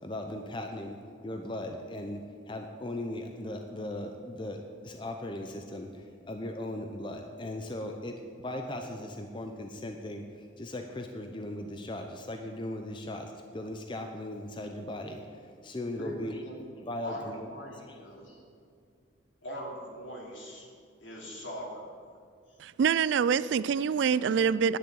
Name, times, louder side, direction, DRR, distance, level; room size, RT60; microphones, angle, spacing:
voice 1, 0.0-18.2, left 1 dB, 25° left, 4 dB, 0.6 m, -38 dB
voice 2, 16.0-16.5 17.0-18.4 19.4-20.7 21.0-21.9 22.5-22.6, equal, 70° left, -2 dB, 2.8 m, -41 dB
voice 3, 22.6-24.8, right 7 dB, 65° right, 17 dB, 0.3 m, -25 dB
10.0 x 6.7 x 8.6 m, 2.3 s
head